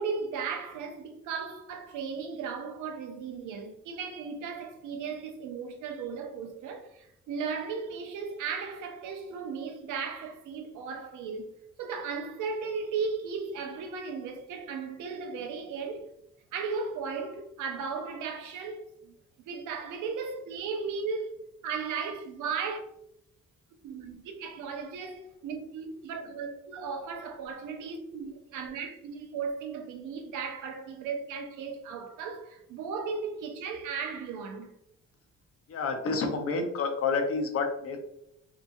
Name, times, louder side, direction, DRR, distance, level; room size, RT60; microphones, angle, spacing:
voice 1, 0.0-11.5 11.8-16.1 16.5-19.1 19.4-22.8 23.8-34.7, right 5 dB, 85° right, 0.6 m, -36 dB
voice 2, 35.7-38.0, left 4 dB, 50° left, 0.6 m, -29 dB
2.8 x 2.3 x 2.5 m
cardioid pair, 90°, 30 cm